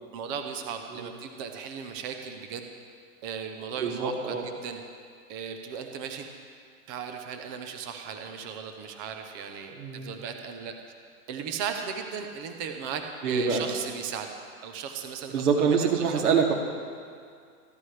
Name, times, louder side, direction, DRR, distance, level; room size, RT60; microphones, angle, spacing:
voice 1, 0.1-2.6 3.2-4.3 4.6-4.8 5.3-6.3 6.9-10.7 11.3-13.0 13.3-14.3 14.6-16.3, right 7 dB, 15° right, 5 dB, 0.4 m, -36 dB
voice 2, 3.8-4.4 9.7-10.1 13.2-13.7 15.3-16.5, right 6 dB, 75° right, 1 dB, 2.6 m, -25 dB
26.5 x 11.5 x 3.2 m, 2.2 s
hypercardioid pair, 140°, 45 cm